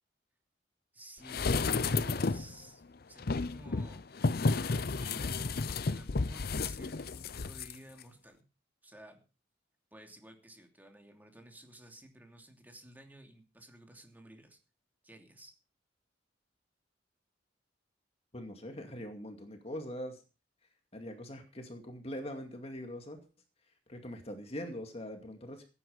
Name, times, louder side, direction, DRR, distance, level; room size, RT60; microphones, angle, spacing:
voice 1, 0.9-2.8 3.1-4.1 4.8-8.4 8.8-9.2 9.9-14.6 15.0-15.5, right 1 dB, 10° right, 3 dB, 2.9 m, -54 dB
sound 1, 1.3-2.5 3.2-7.7 8.0-8.1, left 3 dB, 55° left, 0.6 m, -32 dB
voice 2, 18.3-20.2 20.9-23.2 23.9-25.6, equal, 35° left, 5 dB, 2.3 m, -42 dB
16.5 x 10.0 x 5.2 m, 0.34 s
head